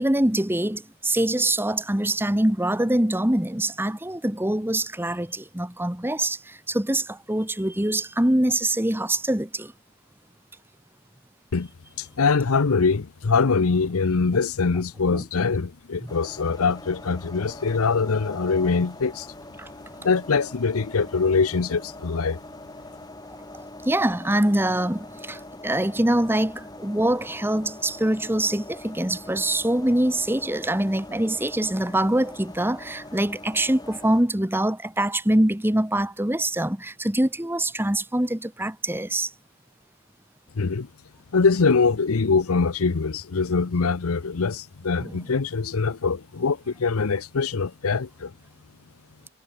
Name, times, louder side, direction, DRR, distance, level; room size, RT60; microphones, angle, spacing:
voice 1, 0.0-9.7 15.1-15.2 16.0-16.1 19.6-19.7 23.8-39.3 45.0-45.1, right 1 dB, 10° right, 1.2 m, -24 dB
voice 2, 12.0-19.3 20.0-22.4 40.6-40.9 41.3-48.3, left 4 dB, 75° left, 0.7 m, -23 dB
sound 1, 16.1-34.2, left 2 dB, 15° left, 6.5 m, -43 dB
head